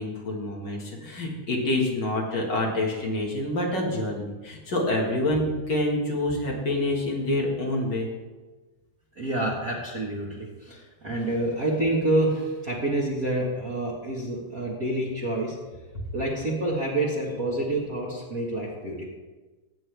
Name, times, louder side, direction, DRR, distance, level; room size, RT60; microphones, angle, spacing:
voice 1, 0.0-8.1, left 1 dB, 40° left, -2 dB, 1.6 m, -27 dB
voice 2, 9.1-15.5 16.1-19.0, right 1 dB, 70° right, -6 dB, 0.8 m, -28 dB
17.5 x 7.8 x 3.4 m, 1.2 s
omnidirectional pair, 4.3 m